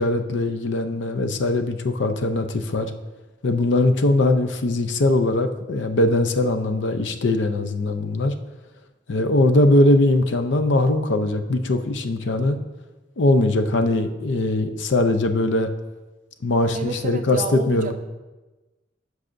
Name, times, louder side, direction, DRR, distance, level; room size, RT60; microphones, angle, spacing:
voice 1, 0.0-2.9 3.4-8.3 9.1-12.6 13.2-15.7 16.4-17.9, left 2 dB, 70° left, 8 dB, 0.5 m, -21 dB
voice 2, 16.7-17.9, right 3 dB, 45° right, 7 dB, 0.5 m, -30 dB
13.0 x 4.8 x 2.6 m, 1.1 s
head